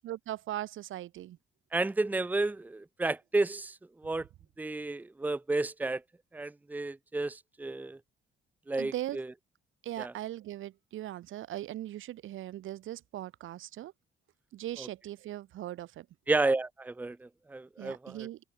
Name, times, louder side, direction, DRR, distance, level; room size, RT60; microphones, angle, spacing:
voice 1, 0.0-1.4 8.8-9.2 9.8-13.9 14.5-16.1 17.8-18.4, right 13 dB, 85° right, 3.2 m, -39 dB
voice 2, 1.7-4.2 4.6-6.0 6.3-8.0 8.7-9.3 10.0-10.1 14.8-14.9 16.3-18.3, right 2 dB, 10° right, 0.9 m, -32 dB
cardioid pair, 175°, 20 cm